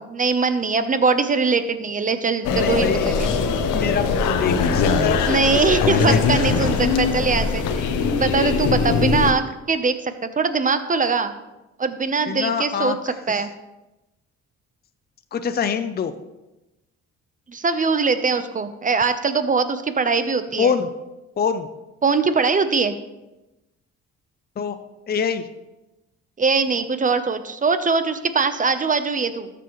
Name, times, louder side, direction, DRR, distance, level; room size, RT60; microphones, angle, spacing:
voice 1, 0.0-3.3 5.3-11.3 11.8-13.5 17.5-20.7 22.0-23.0 26.4-29.5, right 4 dB, 25° right, 10 dB, 0.8 m, -22 dB
sound 1, 2.4-9.3, left 5 dB, 85° left, 0.9 m, -21 dB
voice 2, 2.5-3.2 3.7-6.2 12.3-13.5 15.3-16.1 20.6-20.9 21.4-21.7 24.6-24.8 25.1-25.5, left 6 dB, 30° left, 9 dB, 0.6 m, -25 dB
13.5 x 7.0 x 3.1 m, 1.0 s
cardioid pair, 90°, 30 cm